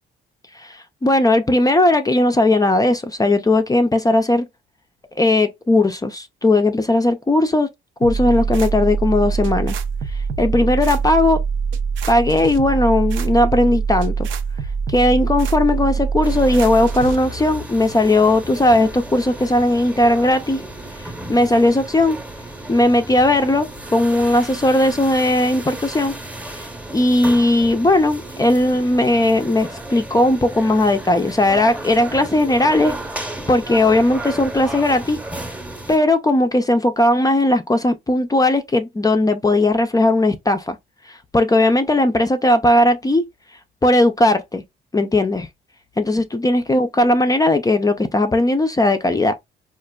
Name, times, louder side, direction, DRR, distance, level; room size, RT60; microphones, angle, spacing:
voice 1, 0.6-4.5 5.2-7.7 8.0-9.8 10.4-11.4 12.1-14.3 14.9-20.6 21.3-22.2 22.7-26.1 26.9-35.2 35.9-40.8 41.1-43.2 43.8-44.6 44.9-45.5 46.0-49.4, left 1 dB, 20° left, 0.5 m, -17 dB
sound 1, 8.0-17.2, right 5 dB, 75° right, 0.6 m, -23 dB
sound 2, 16.2-36.0, right 1 dB, 5° right, 0.9 m, -34 dB
4.1 x 2.4 x 2.2 m
cardioid pair, 90°, 20 cm